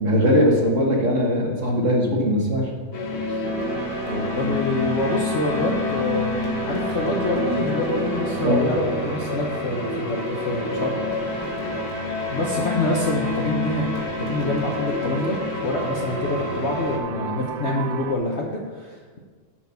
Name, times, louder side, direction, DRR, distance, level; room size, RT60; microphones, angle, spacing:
voice 1, 0.0-2.7 8.4-8.7, equal, 40° right, -1 dB, 1.5 m, -20 dB
sound 1, 2.9-17.0, left 4 dB, 90° left, 2.1 m, -28 dB
sound 2, 3.4-18.2, right 8 dB, 75° right, 0.9 m, -33 dB
voice 2, 4.0-11.6 12.3-15.4 15.6-19.2, left 2 dB, 50° left, -2 dB, 0.9 m, -26 dB
10.5 x 4.6 x 6.8 m, 1.5 s
omnidirectional pair, 2.2 m